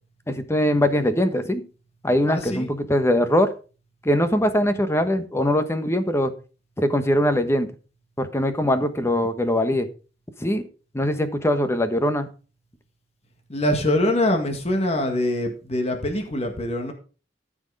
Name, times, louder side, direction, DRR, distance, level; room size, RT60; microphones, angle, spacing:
voice 1, 0.3-1.6 2.0-3.5 4.0-6.3 6.8-7.7 8.2-9.9 10.4-10.6 10.9-12.3, left 1 dB, 15° left, 9 dB, 1.2 m, -21 dB
voice 2, 2.3-2.7 13.5-16.9, left 1 dB, 35° left, 4 dB, 1.9 m, -24 dB
14.0 x 6.3 x 4.9 m, 0.35 s
head